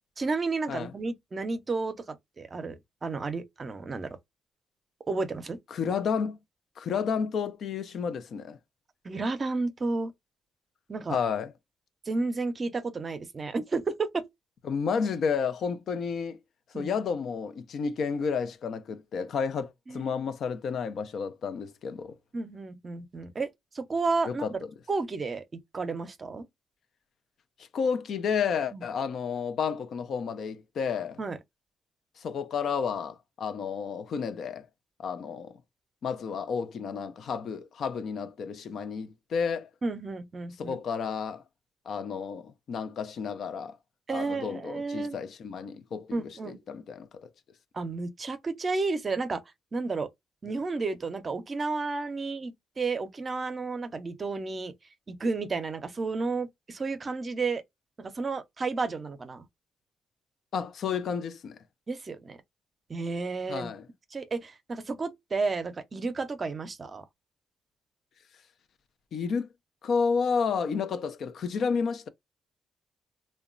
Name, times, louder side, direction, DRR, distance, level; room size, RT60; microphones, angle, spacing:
voice 1, 0.2-4.2 5.1-5.6 9.0-10.1 10.9-11.2 12.1-14.2 16.7-16.9 19.9-20.1 22.3-23.5 23.7-24.6 24.9-26.5 28.7-28.8 31.2-31.4 39.8-40.8 44.1-45.2 46.1-46.6 47.7-49.4 49.7-50.1 50.4-54.7 55.1-57.6 58.0-59.4 61.9-62.4 62.9-63.7 64.1-67.0, right 3 dB, 40° right, 0.5 m, -32 dB
voice 2, 5.7-6.4 6.8-8.6 11.1-11.5 14.7-16.4 16.7-22.1 24.3-24.5 27.7-31.2 32.2-34.7 35.0-35.6 36.0-39.7 40.6-41.4 41.9-43.8 44.1-47.3 60.5-61.6 63.5-63.9 69.1-69.5 69.8-72.1, left 6 dB, 70° left, 0.4 m, -31 dB
2.8 x 2.2 x 2.4 m
cardioid pair, 75°, 0 cm